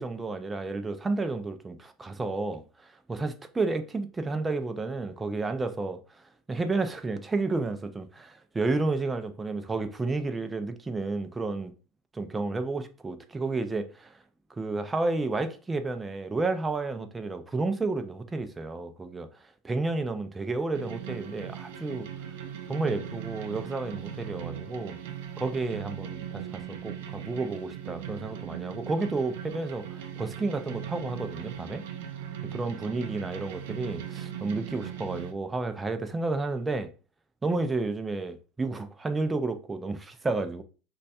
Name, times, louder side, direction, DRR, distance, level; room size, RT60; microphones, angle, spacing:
voice 1, 0.0-6.0 6.5-11.7 12.1-14.1 14.6-19.3 19.6-22.1 22.7-25.0 25.4-31.8 32.5-36.9 37.4-40.6, right 3 dB, 10° right, 0.3 m, -31 dB
sound 1, 20.7-35.3, right 9 dB, 75° right, 0.5 m, -39 dB
3.2 x 2.2 x 4.1 m
supercardioid pair, 170°, 0 cm